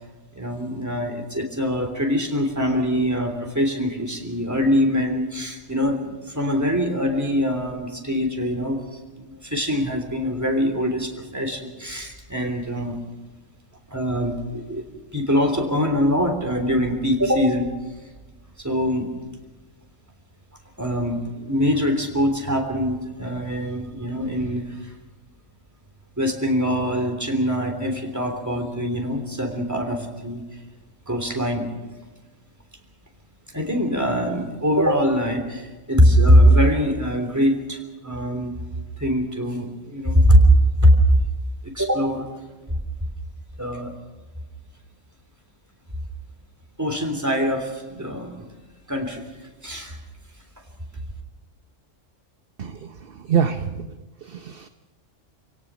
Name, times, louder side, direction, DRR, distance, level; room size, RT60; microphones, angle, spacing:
voice 1, 0.3-13.0 13.9-14.9 15.1-17.7 18.6-19.1 20.8-24.9 26.2-30.6 31.1-31.7 33.5-38.6 39.0-40.4 40.8-40.9 41.6-42.3 43.6-43.9 46.8-48.4 48.9-49.3 49.6-50.0, equal, 15° right, 3 dB, 3.3 m, -22 dB
voice 2, 52.6-54.7, right 7 dB, 50° right, 8 dB, 1.0 m, -26 dB
27.5 x 17.5 x 6.2 m, 1.2 s
omnidirectional pair, 1.3 m